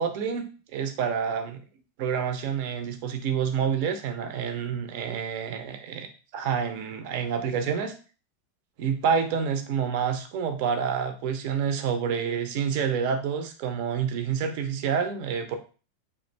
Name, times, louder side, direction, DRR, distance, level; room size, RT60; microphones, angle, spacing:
voice 1, 0.0-1.6 2.0-6.1 6.3-7.9 8.8-15.6, right 7 dB, 45° right, 6 dB, 0.5 m, -28 dB
3.2 x 2.5 x 3.2 m, 0.36 s
figure-of-eight pair, 90°, 0 cm